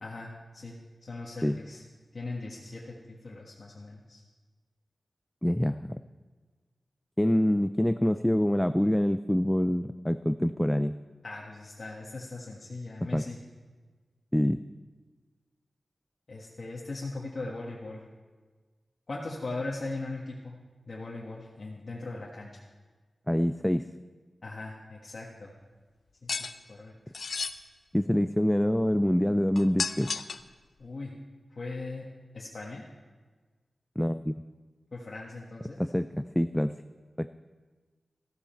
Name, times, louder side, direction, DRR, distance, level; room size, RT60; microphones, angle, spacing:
voice 1, 0.0-1.8 2.1-4.2 11.2-13.4 16.3-18.0 19.1-20.6 20.9-22.6 24.4-25.5 26.2-26.9 30.8-31.1 31.5-32.0 32.3-32.8 34.9-35.8, left 2 dB, 50° left, -4 dB, 1.5 m, -39 dB
voice 2, 5.4-6.0 7.2-10.9 13.1-13.2 14.3-14.6 23.3-23.9 27.9-30.2 34.0-34.4 35.8-36.7 37.2-37.3, equal, 5° left, 10 dB, 0.3 m, -26 dB
sound 1, 26.3-26.5 27.1-27.5 29.6-30.5, left 4 dB, 75° left, 0.6 m, -32 dB
14.5 x 13.0 x 4.4 m, 1.4 s
wide cardioid pair, 100°, 0 cm